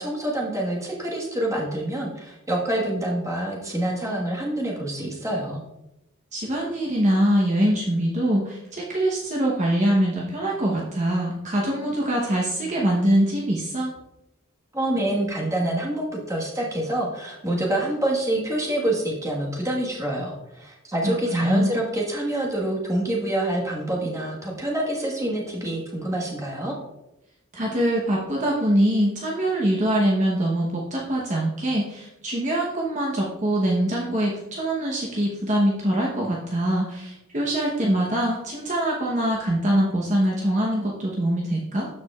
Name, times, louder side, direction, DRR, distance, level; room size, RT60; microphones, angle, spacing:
voice 1, 0.0-5.6 14.7-26.7, right 1 dB, 15° right, -3 dB, 1.5 m, -26 dB
voice 2, 6.3-13.9 21.0-21.7 27.5-41.9, right 1 dB, 35° right, -3 dB, 1.0 m, -23 dB
13.0 x 4.9 x 2.4 m, 0.89 s
head